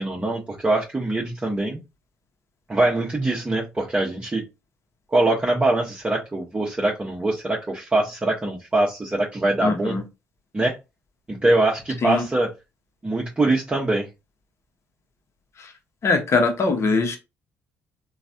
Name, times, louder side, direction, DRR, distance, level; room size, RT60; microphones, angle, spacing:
voice 1, 0.0-1.8 2.7-4.4 5.1-10.0 10.5-10.8 11.3-12.5 13.0-14.1, right 2 dB, 20° right, -2 dB, 0.9 m, -23 dB
voice 2, 9.6-10.0 12.0-12.2 15.6-15.7 16.0-17.2, left 3 dB, 45° left, 5 dB, 0.9 m, -22 dB
3.1 x 2.3 x 2.7 m, 0.25 s
hypercardioid pair, 60°, 6 cm